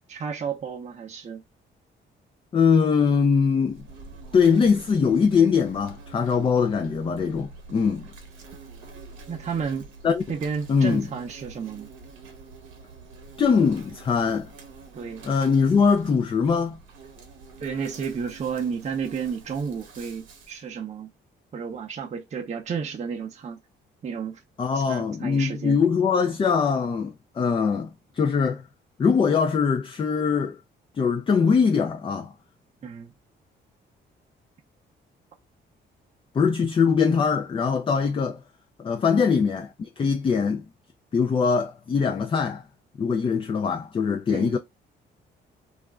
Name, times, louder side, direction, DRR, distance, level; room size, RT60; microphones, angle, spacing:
voice 1, 0.1-1.4 9.3-9.9 10.3-11.9 14.9-15.2 17.6-21.1 21.5-23.6 24.0-24.4 24.7-25.8 32.8-33.1 44.3-44.6, right 6 dB, 35° right, 0.6 m, -32 dB
voice 2, 2.5-3.8 4.3-8.1 10.0-10.2 10.7-11.0 13.4-14.5 15.2-16.8 24.6-28.6 29.0-30.6 31.0-32.3 36.3-38.4 38.8-40.6 41.1-42.6 43.0-44.6, left 5 dB, 25° left, 0.3 m, -22 dB
Insect, 3.6-20.6, right 3 dB, 85° right, 0.8 m, -46 dB
2.4 x 2.1 x 3.5 m
cardioid pair, 90°, 20 cm